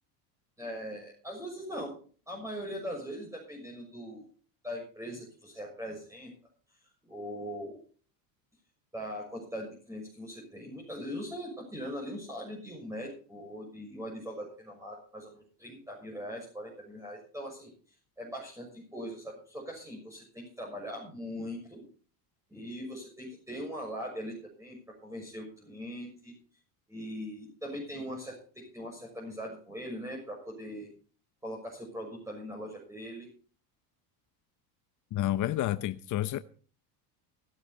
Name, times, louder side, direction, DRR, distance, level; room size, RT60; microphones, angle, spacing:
voice 1, 0.6-2.0 2.3-4.3 4.6-6.3 7.0-7.8 8.9-17.7 18.2-21.9 22.5-24.8 25.0-26.3 26.9-30.9 31.4-33.3, equal, 5° right, -1 dB, 6.3 m, -40 dB
voice 2, 35.1-36.4, left 13 dB, 40° left, 12 dB, 0.8 m, -30 dB
16.5 x 12.5 x 4.1 m, 0.42 s
supercardioid pair, 100°, 47 cm